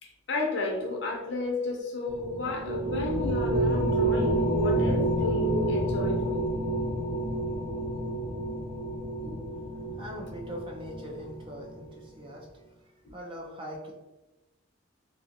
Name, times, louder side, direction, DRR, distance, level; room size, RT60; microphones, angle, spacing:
voice 1, 0.0-6.4 9.2-9.4, left 3 dB, 55° left, 0 dB, 0.6 m, -32 dB
sound 1, 2.1-11.8, right 1 dB, 60° right, 0.8 m, -29 dB
voice 2, 10.0-12.5 13.1-13.9, equal, 25° right, -1 dB, 0.4 m, -41 dB
2.7 x 2.4 x 2.8 m, 1.1 s
head